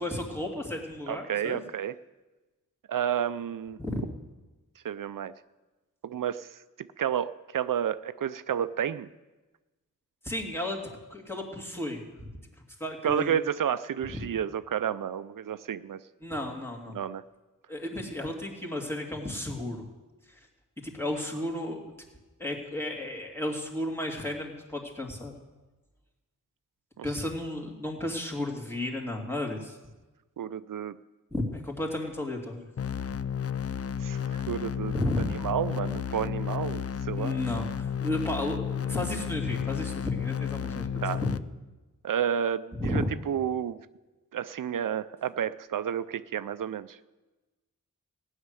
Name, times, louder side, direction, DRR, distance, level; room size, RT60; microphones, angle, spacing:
voice 1, 0.0-1.6 3.8-4.0 10.2-10.8 11.1-12.0 12.8-13.4 14.1-14.2 16.2-17.0 17.7-19.8 20.8-21.8 22.4-25.3 27.0-29.8 31.3-32.6 34.9-35.2 37.1-40.9 41.2-41.3 42.8-43.1, left 1 dB, 10° left, -1 dB, 2.6 m, -33 dB
voice 2, 1.1-1.9 2.9-3.8 4.8-5.3 6.0-6.6 7.0-9.1 13.0-16.0 16.9-17.2 27.0-27.1 30.4-31.0 34.0-34.9 35.4-37.4 41.0-41.2 42.0-43.9 44.3-47.0, right 9 dB, 85° right, 14 dB, 0.5 m, -31 dB
sound 1, 32.8-41.4, left 8 dB, 50° left, 0.5 m, -32 dB
16.0 x 6.6 x 9.7 m, 1.2 s
wide cardioid pair, 70°, 32 cm